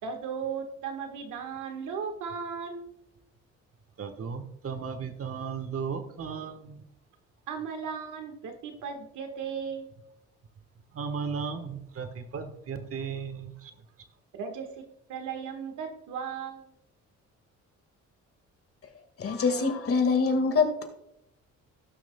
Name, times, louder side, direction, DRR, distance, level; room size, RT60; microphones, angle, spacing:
voice 1, 0.0-2.9 7.5-9.9 14.3-14.7 15.1-16.7, right 6 dB, 80° right, 5 dB, 1.5 m, -36 dB
voice 2, 4.0-6.8 10.9-13.7, right 6 dB, 50° right, 9 dB, 1.2 m, -35 dB
voice 3, 19.2-20.8, left 4 dB, 50° left, 6 dB, 1.8 m, -24 dB
17.0 x 6.1 x 2.2 m, 0.80 s
cardioid pair, 90°, 30 cm